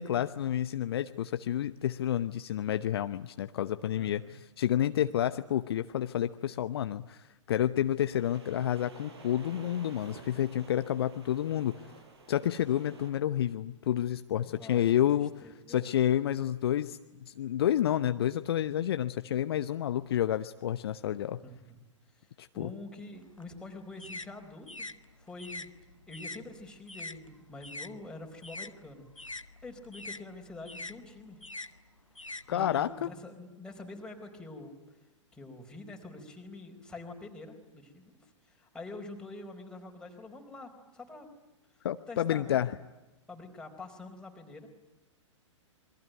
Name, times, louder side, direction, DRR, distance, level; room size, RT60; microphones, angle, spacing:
voice 1, 0.0-11.8 12.3-15.3 15.7-21.4 22.4-22.7 32.5-33.1 41.8-42.8, left 11 dB, 50° left, 11 dB, 0.9 m, -30 dB
voice 2, 4.0-4.3 14.4-14.8 15.1-15.9 21.4-21.8 22.1-22.3 22.5-24.9 25.2-25.7 26.1-29.3 29.6-31.4 32.2-34.7 35.3-41.3 42.1-42.6 43.3-44.7, left 2 dB, 5° left, 1 dB, 4.6 m, -46 dB
sound 1, 8.1-13.1, right 4 dB, 55° right, 5.1 m, -52 dB
sound 2, 23.2-27.9 28.2-33.1, left 2 dB, 90° left, 1.2 m, -44 dB
27.5 x 23.0 x 9.2 m, 1.0 s
figure-of-eight pair, 110°, 16 cm